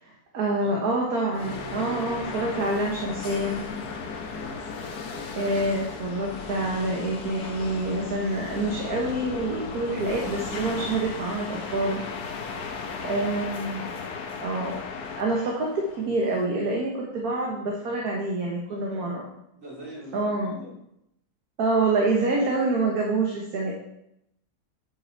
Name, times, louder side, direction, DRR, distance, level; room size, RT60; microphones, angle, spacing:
voice 1, 0.0-3.7 5.3-12.0 13.0-13.9 14.4-14.8 15.2-19.2 20.1-20.5 21.6-23.7, right 2 dB, 70° right, -2 dB, 1.8 m, -27 dB
sound 1, 1.3-16.4, left 5 dB, 80° left, 1.5 m, -35 dB
voice 2, 4.3-4.6 13.0-13.3 18.7-19.1 19.5-20.7, equal, 55° right, -8 dB, 4.5 m, -43 dB
9.5 x 5.5 x 4.5 m, 0.81 s
omnidirectional pair, 1.7 m